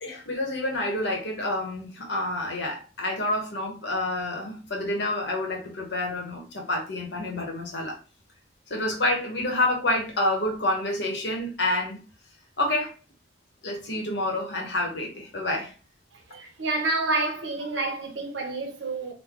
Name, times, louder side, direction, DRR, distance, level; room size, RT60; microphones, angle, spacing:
voice 1, 0.0-8.0 8.7-12.0 12.6-12.9 13.6-15.7, left 1 dB, 75° left, 1.1 m, -28 dB
voice 2, 16.3-19.1, right 2 dB, 90° right, 0.8 m, -28 dB
3.1 x 2.2 x 3.5 m
head